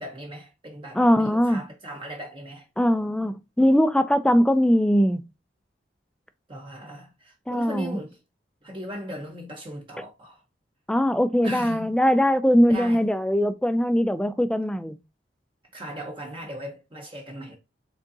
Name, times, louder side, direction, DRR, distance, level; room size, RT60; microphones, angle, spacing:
voice 1, 0.0-2.7 6.5-8.2 8.6-10.4 11.4-11.9 12.7-13.0 15.7-17.6, equal, 30° right, 0.8 m, -38 dB
voice 2, 0.9-1.6 2.8-5.2 7.5-8.0 10.9-15.0, equal, 5° left, 0.3 m, -21 dB
5.2 x 3.7 x 2.6 m
head